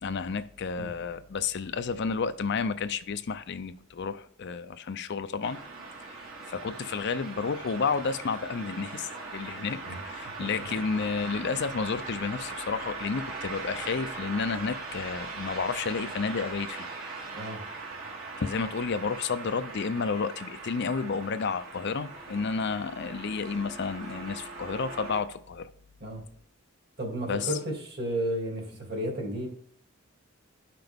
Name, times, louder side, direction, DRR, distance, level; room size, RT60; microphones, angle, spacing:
voice 1, 0.0-5.6 6.0-16.9 18.4-25.7 27.3-27.5, left 5 dB, 55° left, 0.5 m, -31 dB
sound 1, 5.4-25.2, right 3 dB, 85° right, 3.2 m, -40 dB
voice 2, 27.0-29.5, right 1 dB, 50° right, 2.7 m, -32 dB
11.0 x 5.9 x 3.5 m
head